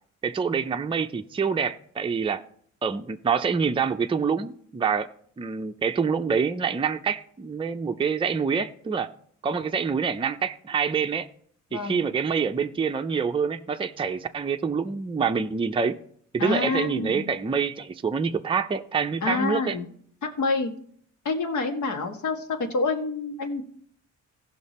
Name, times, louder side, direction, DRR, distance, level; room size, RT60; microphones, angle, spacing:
voice 1, 0.2-2.4 2.8-5.1 5.4-9.1 9.4-11.3 11.7-16.0 16.3-19.8, right 6 dB, 15° right, 0.5 m, -26 dB
voice 2, 11.7-12.0 16.4-17.3 19.2-19.8 20.2-20.7 21.2-23.6, left 3 dB, 70° left, 1.6 m, -27 dB
15.5 x 5.8 x 4.2 m
cardioid pair, 90°, 30 cm